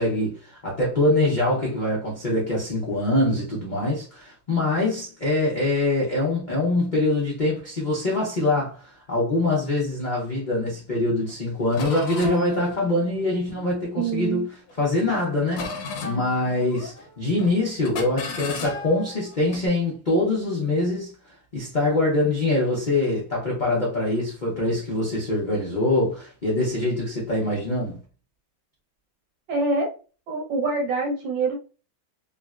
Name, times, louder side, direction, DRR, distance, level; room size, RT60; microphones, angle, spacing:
voice 1, 0.0-14.5 14.8-21.1 21.5-28.0, left 2 dB, 80° left, 0.4 m, -24 dB
sound 1, 11.3-11.4 11.7-14.2 14.7-15.1 15.5-17.1 17.4-17.6 17.8-19.6, left 3 dB, 65° left, 1.1 m, -35 dB
voice 2, 14.0-14.5 29.5-29.9 30.3-31.6, right 3 dB, 70° right, 1.6 m, -25 dB
3.6 x 2.1 x 2.4 m
omnidirectional pair, 2.2 m